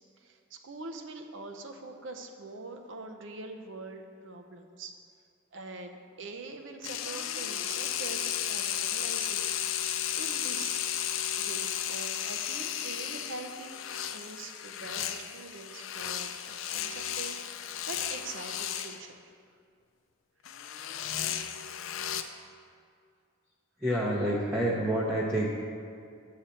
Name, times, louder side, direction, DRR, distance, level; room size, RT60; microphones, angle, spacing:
voice 1, 0.2-4.9 5.5-9.8 10.1-10.9 11.4-19.3, right 3 dB, 65° right, 5 dB, 0.7 m, -44 dB
sound 1, 6.8-19.0 20.5-22.2, left 10 dB, 75° left, 0.5 m, -34 dB
voice 2, 23.8-25.5, right 1 dB, 10° right, -5 dB, 0.6 m, -28 dB
8.7 x 6.7 x 4.3 m, 2.3 s
head